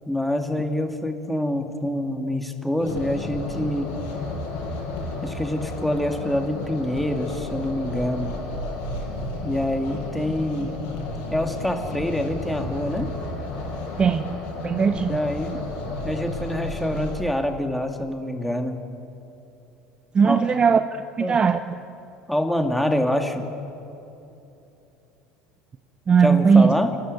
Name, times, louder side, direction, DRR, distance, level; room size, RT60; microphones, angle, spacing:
voice 1, 0.1-3.9 5.2-8.3 9.4-10.8 11.3-13.1 15.0-15.6 16.0-18.8 20.2-20.4 21.2-21.4 22.3-23.5 26.2-26.9, left 1 dB, ahead, 4 dB, 2.6 m, -26 dB
sound 1, 2.8-17.2, left 2 dB, 65° left, 6.6 m, -32 dB
voice 2, 14.6-15.2 20.1-21.6 26.1-26.7, right 6 dB, 30° right, 11 dB, 0.8 m, -18 dB
30.0 x 12.5 x 9.3 m, 2.8 s
hypercardioid pair, 75°, 3 cm